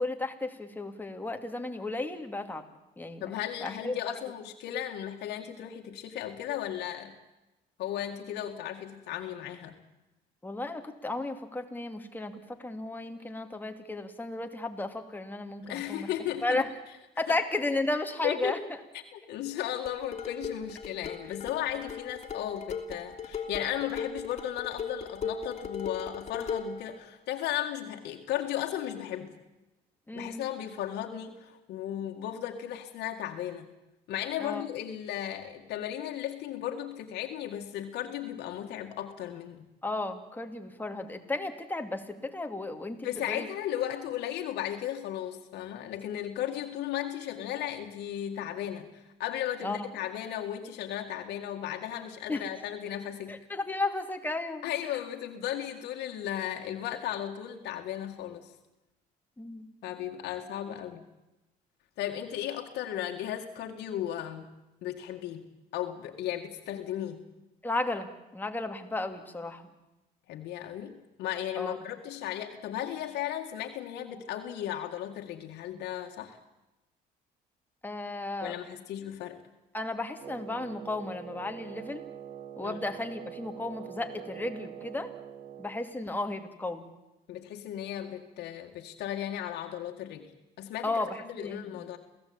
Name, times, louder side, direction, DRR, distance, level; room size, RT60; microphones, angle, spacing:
voice 1, 0.0-2.6 3.0-3.3 3.6-3.9 10.4-16.1 16.4-16.6 17.2-18.6 30.1-30.4 34.4-34.6 39.8-43.4 49.6-49.9 52.3-52.4 53.3-54.6 59.4-59.6 67.6-69.6 71.6-71.8 77.8-78.5 79.7-82.0 82.6-85.1 85.6-86.8 90.8-91.1 91.4-91.6, left 2 dB, 10° left, 5 dB, 2.6 m, -34 dB
voice 2, 3.2-7.1 7.8-9.8 15.6-16.6 17.3-17.4 18.2-18.6 18.9-29.3 30.1-33.7 34.1-39.7 43.0-53.4 54.6-58.5 59.8-61.0 62.0-64.5 64.8-67.2 70.3-76.4 78.4-79.4 82.6-82.8 87.3-90.3 90.6-92.0, left 11 dB, 80° left, 3 dB, 2.0 m, -35 dB
sound 1, 19.8-26.8, left 5 dB, 40° left, 2.9 m, -38 dB
Wind instrument woodwind instrument, 80.2-85.9, right 10 dB, 50° right, 1.4 m, -44 dB
27.5 x 16.5 x 8.8 m, 1.0 s
cardioid pair, 110°, 17 cm